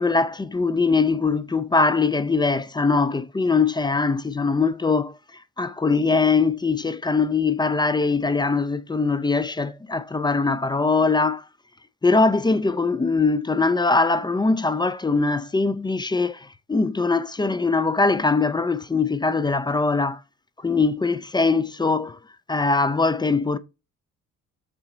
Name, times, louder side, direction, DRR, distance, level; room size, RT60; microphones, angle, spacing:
voice 1, 0.0-5.2 5.6-11.4 12.0-20.2 20.6-22.2 22.5-23.6, left 4 dB, 15° left, 0.4 m, -22 dB
6.8 x 5.8 x 3.9 m
cardioid pair, 90°, 30 cm